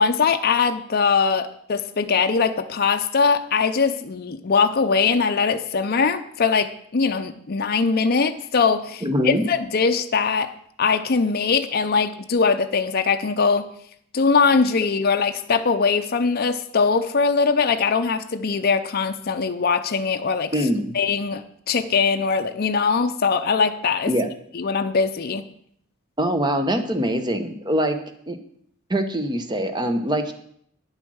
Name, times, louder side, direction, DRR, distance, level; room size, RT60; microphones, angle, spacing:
voice 1, 0.0-10.5 10.8-13.7 14.1-20.5 20.9-24.1 24.5-25.4, left 5 dB, 45° left, 7 dB, 0.6 m, -21 dB
voice 2, 9.0-9.4 20.5-21.0 24.1-24.3 26.2-28.0 28.3-28.4 28.9-30.3, equal, 20° right, 8 dB, 1.0 m, -23 dB
9.7 x 8.1 x 6.3 m, 0.67 s
head